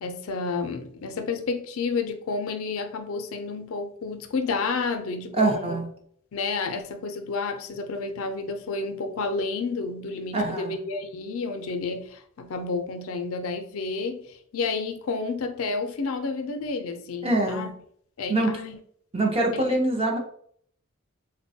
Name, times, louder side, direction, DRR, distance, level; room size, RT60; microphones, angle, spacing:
voice 1, 0.0-5.8 6.3-17.7 18.2-18.8 19.5-19.8, left 4 dB, 80° left, 7 dB, 0.4 m, -30 dB
voice 2, 5.3-5.9 10.3-10.8 17.2-17.7 18.3-18.5 19.1-20.2, right 2 dB, 25° right, 2 dB, 0.5 m, -24 dB
3.9 x 2.2 x 2.6 m, 0.62 s
head